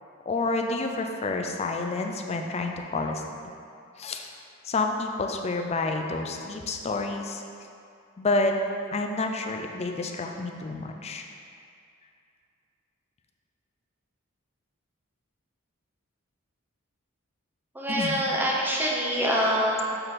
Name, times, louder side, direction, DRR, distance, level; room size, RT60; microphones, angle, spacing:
voice 1, 0.3-3.2 4.0-4.3 4.6-7.4 8.2-8.5 8.9-11.3 17.9-18.1, left 3 dB, 30° left, 3 dB, 0.4 m, -29 dB
voice 2, 17.7-19.8, equal, 10° right, -4 dB, 0.8 m, -25 dB
7.9 x 3.7 x 4.1 m, 2.4 s
head